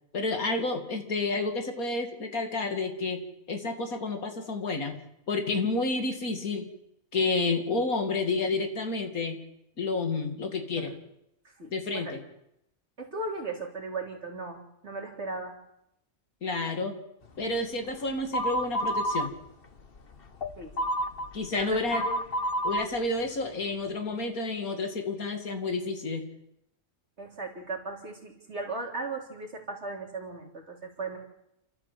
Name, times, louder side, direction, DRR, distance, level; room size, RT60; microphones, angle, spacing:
voice 1, 0.1-3.2 3.5-5.0 5.3-6.7 7.1-9.4 9.8-10.9 11.7-12.2 16.4-17.0 17.4-19.3 21.3-22.1 22.6-26.3, left 3 dB, 70° left, 5 dB, 2.9 m, -30 dB
voice 2, 11.4-12.1 13.0-15.6 20.6-20.9 21.5-22.2 27.2-31.2, right 3 dB, 45° right, 1 dB, 3.9 m, -37 dB
sound 1, 18.3-19.3 19.8-22.8, equal, 40° left, 1.4 m, -29 dB
30.0 x 13.0 x 7.6 m, 0.81 s
omnidirectional pair, 1.6 m